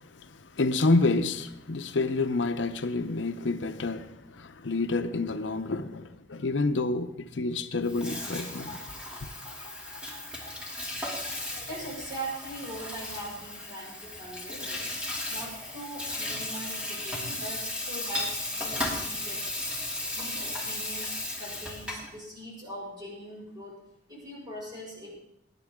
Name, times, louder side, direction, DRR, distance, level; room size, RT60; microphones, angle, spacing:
voice 1, 0.5-8.8 9.2-9.3, left 3 dB, 75° left, 0.7 m, -28 dB
Water tap faucet / Sink (filling or washing), 7.8-22.1, left 1 dB, 5° right, 2.7 m, -35 dB
voice 2, 11.7-14.9 15.3-19.6 20.1-23.8 24.1-25.2, right 1 dB, 25° right, 5.6 m, -41 dB
20.0 x 9.9 x 3.7 m
head